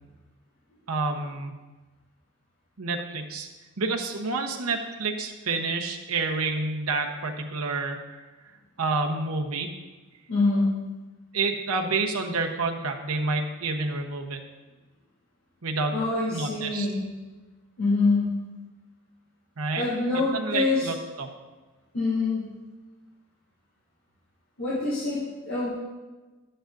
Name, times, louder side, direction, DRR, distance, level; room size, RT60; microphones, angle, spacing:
voice 1, 0.9-1.5 2.8-3.5 3.8-8.2 8.8-9.7 11.3-14.4 15.6-16.0 16.3-16.9 19.6-19.8 20.3-21.3, right 3 dB, 90° right, 2 dB, 1.0 m, -28 dB
voice 2, 10.3-10.7 15.9-17.0 17.8-18.3 19.7-20.9 21.9-22.4 24.6-25.7, left 3 dB, 75° left, -10 dB, 3.1 m, -25 dB
11.5 x 10.0 x 2.6 m, 1.2 s
head